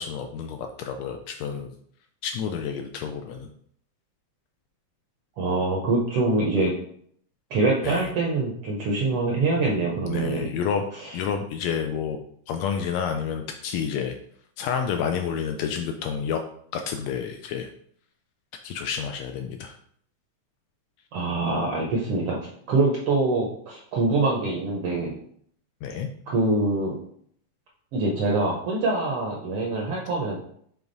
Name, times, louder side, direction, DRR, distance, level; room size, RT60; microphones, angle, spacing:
voice 1, 0.0-1.7 2.2-3.5 7.8-8.1 10.1-10.8 11.1-12.2 12.5-14.1 14.6-16.4 16.7-17.7 18.6-19.8 25.8-26.1, left 7 dB, 80° left, 5 dB, 1.6 m, -29 dB
voice 2, 5.4-6.7 7.5-10.5 11.0-11.2 21.1-22.4 22.7-25.2 26.3-27.0 27.9-30.4, right 2 dB, 70° right, -2 dB, 1.4 m, -24 dB
6.9 x 3.5 x 3.9 m, 0.64 s
omnidirectional pair, 3.5 m